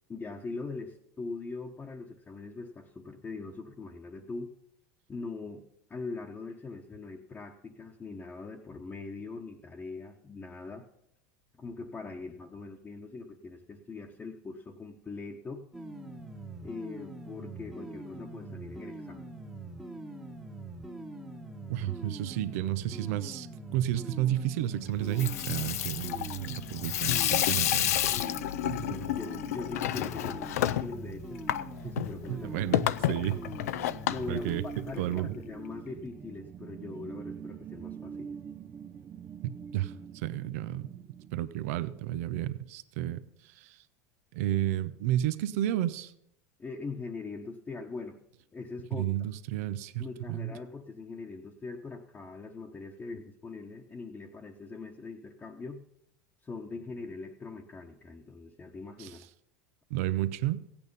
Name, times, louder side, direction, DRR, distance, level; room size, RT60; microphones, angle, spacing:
voice 1, 0.1-4.5 5.1-5.6 5.9-10.9 11.5-15.6 16.6-19.3 28.3-28.4 28.7-31.4 31.8-33.1 34.1-38.3 46.6-48.2 48.5-49.1 50.0-55.8 56.4-59.2, left 3 dB, 20° left, -1 dB, 1.1 m, -41 dB
sound 1, 15.7-34.6, right 2 dB, 5° right, 1.2 m, -43 dB
voice 2, 21.7-28.1 28.6-29.0 31.8-31.9 32.3-33.4 34.3-35.3 39.4-40.9 41.3-43.8 44.3-46.1 48.9-50.5 59.0-59.2 59.9-60.6, right 13 dB, 70° right, 14 dB, 0.7 m, -32 dB
Water tap faucet / Sink (filling or washing), 25.0-35.2, left 13 dB, 80° left, 0.4 m, -31 dB
sound 2, 33.3-42.3, right 7 dB, 30° right, 0.6 m, -45 dB
15.5 x 8.8 x 5.4 m, 0.75 s
hypercardioid pair, 105°, 8 cm